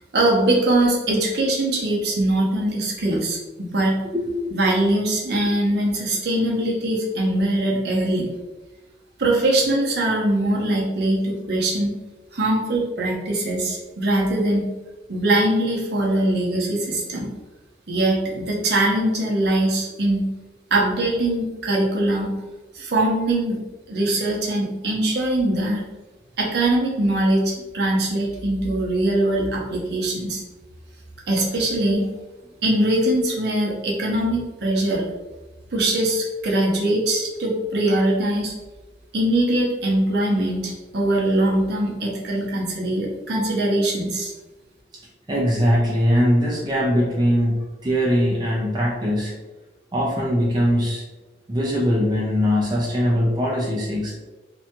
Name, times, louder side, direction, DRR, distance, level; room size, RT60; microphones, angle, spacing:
voice 1, 0.1-4.0 4.5-8.2 9.2-11.9 12.3-14.7 15.1-17.3 17.9-20.3 20.7-22.3 22.7-23.6 23.9-25.8 26.4-30.4 31.3-32.0 32.6-35.0 35.7-38.5 39.1-44.3, right 1 dB, 60° right, -2 dB, 0.7 m, -22 dB
voice 2, 4.1-4.6 45.3-49.4 49.9-51.0 51.5-54.1, equal, 20° right, -4 dB, 0.4 m, -21 dB
2.7 x 2.2 x 2.8 m, 1.1 s
head